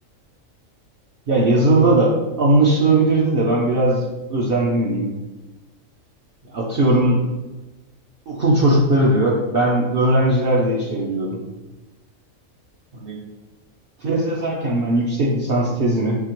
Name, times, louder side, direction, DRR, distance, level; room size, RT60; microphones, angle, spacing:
voice 1, 1.3-4.0 4.3-5.1 6.5-7.2 8.3-11.4 12.9-13.2 14.0-16.2, right 2 dB, 55° right, -4 dB, 0.7 m, -18 dB
5.6 x 2.9 x 3.0 m, 1.1 s
omnidirectional pair, 1.4 m